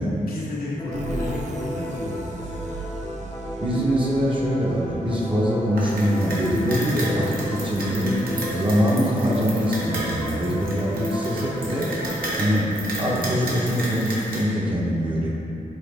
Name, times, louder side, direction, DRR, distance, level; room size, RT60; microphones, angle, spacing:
voice 1, 0.2-2.8, left 1 dB, 85° left, -5 dB, 1.2 m, -32 dB
sound 1, 0.8-12.2, left 1 dB, 20° left, 0.6 m, -34 dB
sound 2, 0.9-6.4, right 3 dB, 55° right, 0.5 m, -37 dB
voice 2, 3.6-8.2 8.4-11.9 12.4-15.3, equal, 35° right, -5 dB, 0.8 m, -23 dB
sound 3, 5.8-14.4, right 1 dB, 85° right, 1.2 m, -32 dB
5.6 x 4.2 x 4.0 m, 2.8 s
wide cardioid pair, 140°, 15 cm